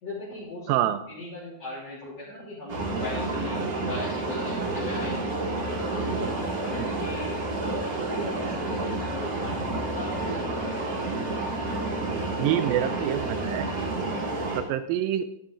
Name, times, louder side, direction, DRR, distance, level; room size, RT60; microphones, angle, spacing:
voice 1, 0.0-3.6 3.8-5.2 5.5-7.3 7.6-10.8, left 2 dB, 45° left, -10 dB, 4.4 m, -38 dB
voice 2, 0.7-1.0 6.8-6.9 12.4-13.9 14.5-15.3, right 11 dB, 80° right, 12 dB, 2.2 m, -27 dB
sound 1, 2.7-14.6, right 2 dB, 35° right, 1.5 m, -30 dB
12.0 x 11.5 x 3.8 m, 0.76 s
omnidirectional pair, 4.4 m